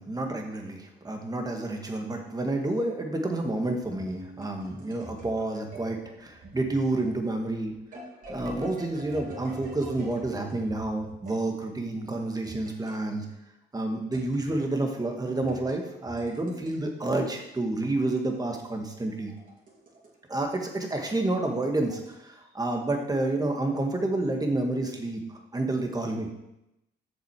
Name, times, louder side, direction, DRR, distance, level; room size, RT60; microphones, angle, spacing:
voice 1, 0.0-7.7 8.3-13.3 13.7-19.3 20.3-26.3, right 2 dB, 20° right, 3 dB, 1.8 m, -29 dB
sound 1, 3.8-11.4 12.4-13.0 14.1-14.6 15.4-16.7 18.1-20.1 20.4-20.5 21.1-22.1, right 1 dB, 45° right, 3.3 m, -46 dB
7.7 x 6.8 x 4.8 m, 0.87 s
cardioid pair, 80°, 19 cm